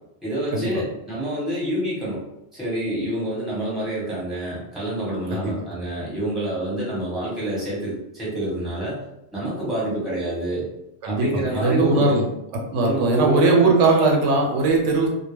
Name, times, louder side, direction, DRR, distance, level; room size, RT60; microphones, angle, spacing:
voice 1, 0.2-2.2 2.5-9.0 9.3-10.7 11.0-12.2 12.8-13.4, right 1 dB, ahead, -8 dB, 1.0 m, -27 dB
voice 2, 11.0-12.3 12.5-15.1, right 3 dB, 85° right, 0 dB, 0.9 m, -19 dB
2.2 x 2.1 x 3.3 m, 0.84 s
omnidirectional pair, 1.2 m